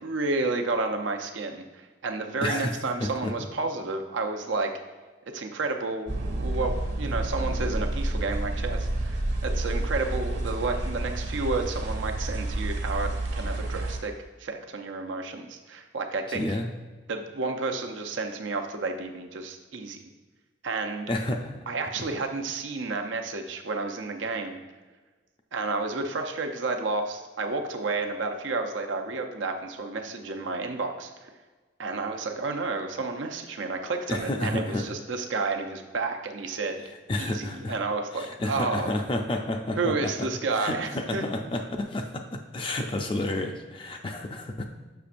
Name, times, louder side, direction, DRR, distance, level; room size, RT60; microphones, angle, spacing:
voice 1, 0.0-4.7 5.3-14.1 14.4-16.5 17.1-20.0 20.6-21.1 21.7-24.6 25.5-31.3 31.8-36.8 37.2-38.9 39.8-41.2, right 3 dB, 85° right, 4 dB, 0.6 m, -31 dB
voice 2, 2.4-2.7 3.0-3.3 16.3-16.7 21.1-21.6 34.1-34.9 37.1-37.8 38.1-40.3 40.6-44.7, left 1 dB, 25° left, 4 dB, 0.4 m, -30 dB
sound 1, 6.1-14.0, right 1 dB, 65° right, 1.4 m, -29 dB
6.9 x 5.9 x 2.5 m, 1.3 s
head